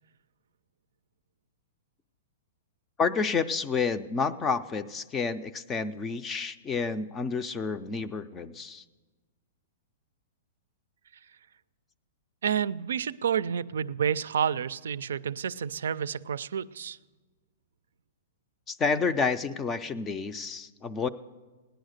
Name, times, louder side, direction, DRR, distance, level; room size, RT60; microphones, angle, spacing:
voice 1, 3.0-8.8 18.7-21.1, left 5 dB, 15° left, 12 dB, 0.4 m, -29 dB
voice 2, 12.4-17.0, right 8 dB, 90° right, 17 dB, 0.4 m, -29 dB
16.5 x 10.0 x 6.5 m, 1.3 s
hypercardioid pair, 165°, 0 cm